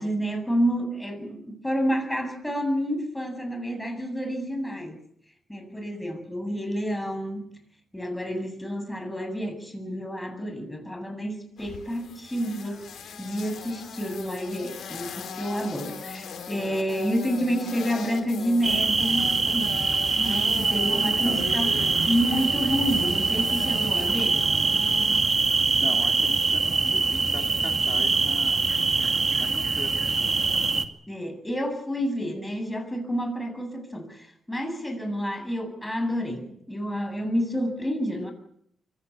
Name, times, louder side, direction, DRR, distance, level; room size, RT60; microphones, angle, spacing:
voice 1, 0.0-5.0 5.5-7.5 7.9-12.9 13.2-19.8 20.2-21.8 22.1-24.5 31.1-38.3, equal, 10° left, 6 dB, 7.7 m, -29 dB
sound 1, 11.6-25.2, left 6 dB, 75° left, 4.5 m, -39 dB
sound 2, 18.6-30.9, right 4 dB, 40° right, 2.3 m, -24 dB
voice 2, 20.6-21.4 25.4-30.4, left 5 dB, 55° left, 3 dB, 2.7 m, -41 dB
24.0 x 16.0 x 9.5 m, 0.70 s
cardioid pair, 70°, 0 cm